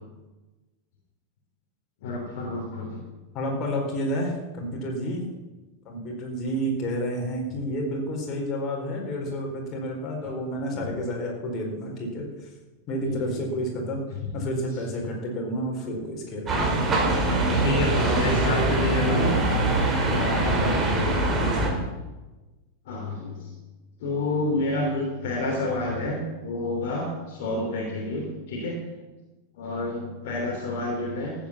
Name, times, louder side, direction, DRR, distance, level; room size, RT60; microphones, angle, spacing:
voice 1, 2.0-3.0 13.0-13.4 14.2-14.3 17.1-17.2 17.6-19.4 22.8-23.5 24.0-28.8 29.5-31.3, left 2 dB, 50° left, -1 dB, 3.2 m, -29 dB
voice 2, 3.3-5.2 5.8-12.5 12.9-14.0 14.3-16.7 18.0-18.4 20.0-21.8, equal, 35° left, 0 dB, 4.5 m, -30 dB
sound 1, 16.5-21.7, right 2 dB, 25° right, 3.9 m, -23 dB
15.0 x 9.0 x 7.3 m, 1.1 s
figure-of-eight pair, 90°, 0 cm